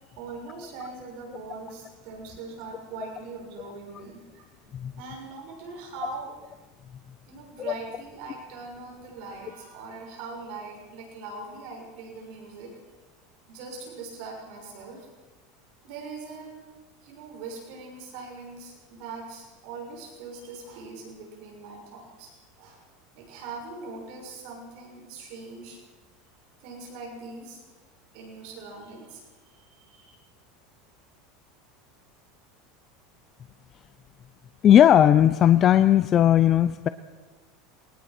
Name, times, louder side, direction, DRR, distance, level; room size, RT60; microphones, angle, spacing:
voice 1, 0.1-6.4 7.3-12.8 13.5-15.1 15.8-16.6 17.0-22.8 23.1-25.8 26.6-27.6 28.1-30.1, right 3 dB, 55° right, 0 dB, 6.7 m, -41 dB
voice 2, 34.6-36.9, left 10 dB, 30° left, 12 dB, 0.6 m, -17 dB
22.5 x 19.5 x 6.1 m, 1.3 s
supercardioid pair, 155°, 0 cm